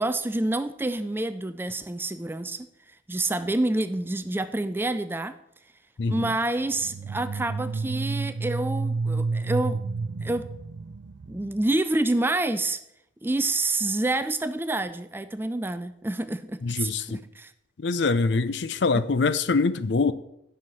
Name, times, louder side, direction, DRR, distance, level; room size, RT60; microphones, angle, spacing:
voice 1, 0.0-2.7 3.1-5.4 6.1-9.8 10.2-10.5 11.3-12.8 13.2-17.5 18.9-19.1, right 2 dB, 10° right, 0.3 m, -28 dB
voice 2, 6.0-6.3 16.6-17.0 17.8-20.1, left 4 dB, 60° left, 0.5 m, -24 dB
sound 1, 6.7-11.6, right 4 dB, 85° right, 0.5 m, -30 dB
10.0 x 5.7 x 6.3 m
head